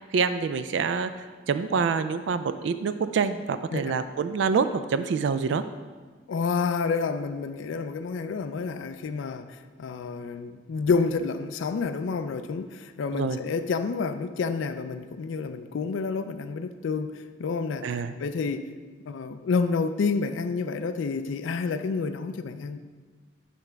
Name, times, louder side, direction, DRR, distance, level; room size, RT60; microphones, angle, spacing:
voice 1, 0.1-1.1 1.5-5.6 13.1-13.4 17.8-18.1, right 5 dB, 75° right, 0.3 m, -26 dB
voice 2, 6.3-18.7 19.1-22.8, left 4 dB, 85° left, 0.4 m, -29 dB
8.5 x 3.4 x 5.8 m
head